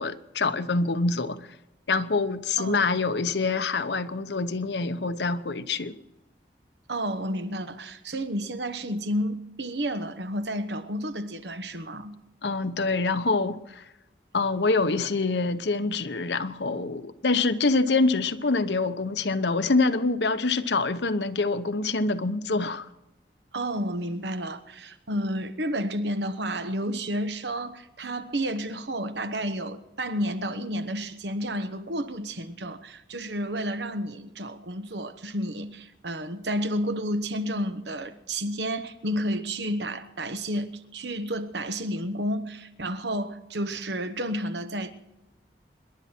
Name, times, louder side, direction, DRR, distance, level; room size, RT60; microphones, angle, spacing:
voice 1, 0.0-1.4 1.9-5.9 12.4-13.8 14.3-22.8, left 3 dB, 75° left, 0.9 m, -25 dB
voice 2, 6.9-12.1 23.5-44.9, equal, 75° right, 1.2 m, -31 dB
26.5 x 11.5 x 4.5 m
head